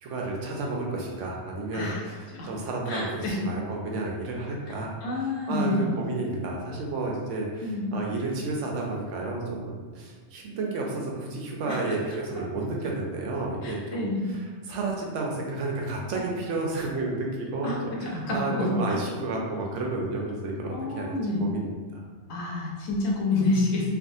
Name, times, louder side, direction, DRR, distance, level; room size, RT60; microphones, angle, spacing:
voice 1, 0.0-4.9 5.2-21.1 21.4-22.0, right 2 dB, 75° right, -1 dB, 0.9 m, -31 dB
voice 2, 1.7-2.5 2.9-3.4 5.0-5.8 7.6-7.9 11.7-11.8 13.6-14.3 16.1-16.2 17.6-19.0 20.7-21.4 22.3-24.0, left 2 dB, 90° left, -2 dB, 1.1 m, -28 dB
3.4 x 2.3 x 2.6 m, 1.4 s
omnidirectional pair, 1.3 m